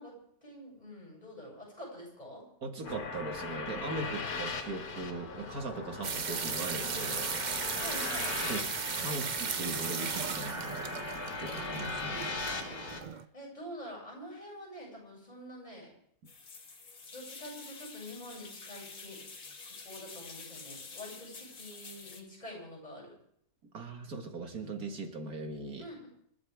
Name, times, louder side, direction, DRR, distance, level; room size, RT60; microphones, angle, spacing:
voice 1, 0.0-2.4 7.8-8.4 13.3-15.9 17.1-19.2 19.6-23.1 25.8-26.1, equal, 25° left, -4 dB, 7.4 m, -46 dB
voice 2, 2.6-7.7 8.4-8.7 9.0-10.9 11.4-12.5 23.7-25.9, right 3 dB, 85° right, 4 dB, 2.3 m, -40 dB
sound 1, 2.8-13.0, left 3 dB, 85° left, 2.1 m, -39 dB
sound 2, 6.0-13.2, right 6 dB, 40° right, 0.8 m, -36 dB
sound 3, 16.2-22.2, left 4 dB, 70° left, 2.1 m, -48 dB
27.5 x 12.5 x 3.6 m, 0.68 s
omnidirectional pair, 1.5 m